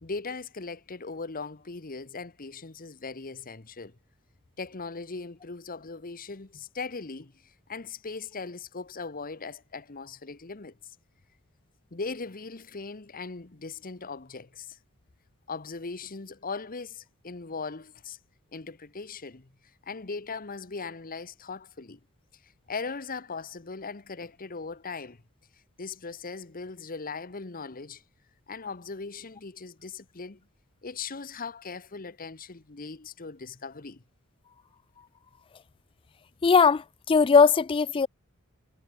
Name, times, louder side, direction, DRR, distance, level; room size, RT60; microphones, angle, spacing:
voice 1, 0.0-3.9 4.6-10.9 11.9-14.8 15.5-18.2 18.5-19.5 19.8-22.0 22.4-25.2 25.8-28.0 28.5-30.4 30.8-34.0, left 4 dB, 40° left, 1.2 m, -39 dB
voice 2, 36.4-38.1, left 5 dB, 25° left, 0.3 m, -20 dB
head